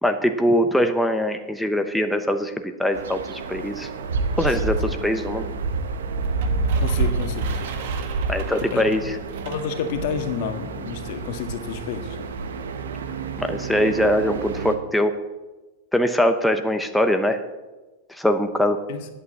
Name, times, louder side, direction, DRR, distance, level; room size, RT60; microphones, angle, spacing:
voice 1, 0.0-3.9 4.4-5.4 8.3-9.1 13.4-15.1 15.9-17.4 18.1-18.8, equal, ahead, 6 dB, 0.9 m, -22 dB
sound 1, 2.9-14.8, right 3 dB, 85° right, 1.3 m, -28 dB
sound 2, 6.2-10.3, right 7 dB, 65° right, 1.8 m, -40 dB
voice 2, 6.8-7.7 8.6-8.8 9.4-12.3 18.9-19.1, left 7 dB, 60° left, 6 dB, 1.7 m, -30 dB
11.0 x 8.6 x 7.8 m, 1.1 s
hypercardioid pair, 120°, 0 cm